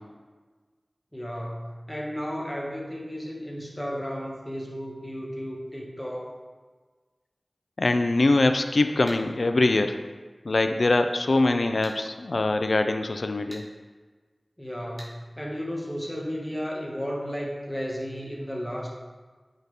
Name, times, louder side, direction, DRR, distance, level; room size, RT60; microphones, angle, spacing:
voice 1, 1.1-6.3 14.6-18.9, equal, 15° left, -3 dB, 1.6 m, -34 dB
voice 2, 7.8-10.0 10.5-13.7, left 2 dB, 80° left, 7 dB, 0.4 m, -23 dB
sound 1, 9.1-9.2 11.8-12.0 13.5-13.7 15.0-15.2, equal, 35° right, 2.0 m, -43 dB
9.0 x 4.1 x 3.5 m, 1.4 s
wide cardioid pair, 45°, 0 cm